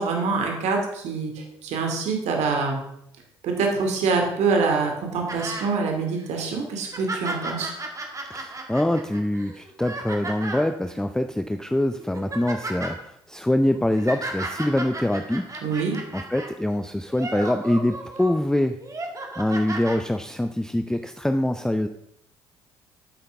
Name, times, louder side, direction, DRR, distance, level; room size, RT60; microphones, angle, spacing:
voice 1, 0.0-2.8 3.4-7.7 15.6-16.0, right 4 dB, 60° right, 2 dB, 2.4 m, -25 dB
sound 1, 5.3-5.7 6.2-6.3 6.7-10.7 11.4-11.6 12.0-12.9 13.7-16.5 17.0-18.3 18.8-20.0 20.9-21.0, right 2 dB, 25° right, 2.0 m, -34 dB
voice 2, 8.3-15.5 16.1-18.8 19.4-21.9, left 1 dB, 5° left, 8 dB, 0.5 m, -24 dB
11.5 x 8.6 x 3.5 m, 0.76 s
figure-of-eight pair, 50°, 13 cm